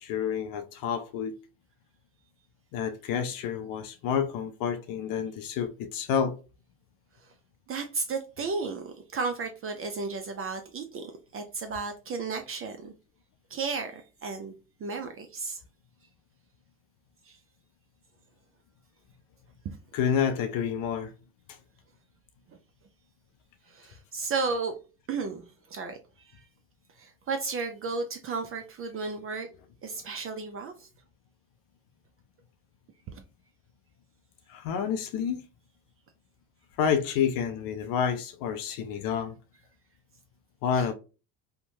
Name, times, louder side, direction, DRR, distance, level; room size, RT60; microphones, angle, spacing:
voice 1, 0.0-1.3 2.7-6.4 19.9-21.1 21.5-21.6 34.5-35.4 36.8-39.4 40.6-40.9, left 7 dB, 60° left, 0.5 m, -29 dB
voice 2, 7.7-12.9 13.5-14.5 14.8-15.6 17.3-17.4 19.6-19.8 23.7-24.7 25.1-26.3 27.0-29.5 29.8-30.9 33.1-33.2 40.7-40.9, right 4 dB, 35° right, 0.4 m, -34 dB
2.8 x 2.1 x 2.6 m
supercardioid pair, 85°, 40 cm